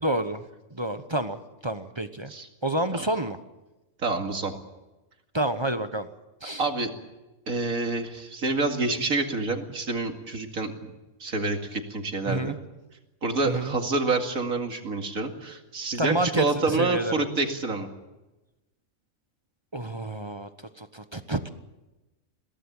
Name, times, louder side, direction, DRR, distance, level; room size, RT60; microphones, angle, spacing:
voice 1, 0.0-0.4 0.7-2.3 2.6-3.4 5.3-6.1 6.4-6.6 12.3-12.6 13.4-13.7 16.0-17.2 19.7-20.5 20.8-21.5, right 1 dB, 20° right, 9 dB, 1.0 m, -29 dB
voice 2, 4.0-4.5 6.6-6.9 7.5-10.9 11.2-12.6 13.2-17.9, right 3 dB, 85° right, 4 dB, 2.7 m, -27 dB
23.0 x 17.0 x 8.9 m, 1.1 s
omnidirectional pair, 1.4 m